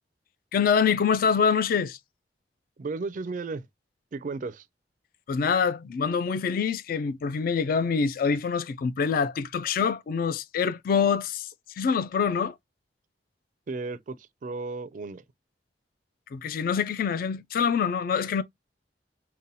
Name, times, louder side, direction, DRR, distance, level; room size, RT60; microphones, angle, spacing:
voice 1, 0.5-2.0 5.3-12.6 16.3-18.4, left 6 dB, 55° left, 0.3 m, -25 dB
voice 2, 2.8-3.7 4.1-4.7 13.7-15.2, right 3 dB, 45° right, 0.4 m, -34 dB
5.4 x 2.2 x 2.6 m
head